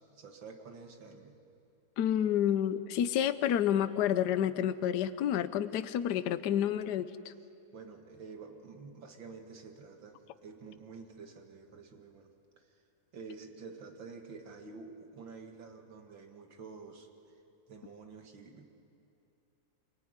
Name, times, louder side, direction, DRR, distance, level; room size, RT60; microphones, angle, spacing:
voice 1, 0.0-1.4 7.7-12.8 13.1-17.1 17.7-18.7, right 4 dB, 80° right, 4 dB, 2.6 m, -49 dB
voice 2, 2.0-7.1, left 10 dB, 65° left, 13 dB, 1.3 m, -29 dB
27.5 x 19.5 x 9.7 m, 2.8 s
omnidirectional pair, 2.1 m